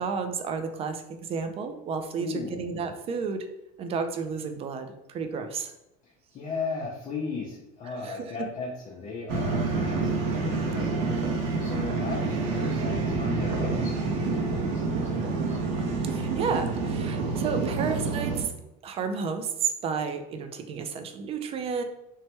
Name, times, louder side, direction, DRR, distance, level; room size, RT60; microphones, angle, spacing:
voice 1, 0.0-3.5 3.8-5.7 7.9-8.3 16.0-18.5 18.8-21.8, right 5 dB, 30° right, 7 dB, 0.3 m, -32 dB
voice 2, 2.2-2.6 6.0-10.9 11.6-15.6, left 4 dB, 35° left, -4 dB, 0.6 m, -36 dB
sound 1, 9.3-18.4, right 3 dB, 70° right, 0.6 m, -28 dB
3.1 x 2.2 x 2.9 m, 0.89 s
supercardioid pair, 120°, 20 cm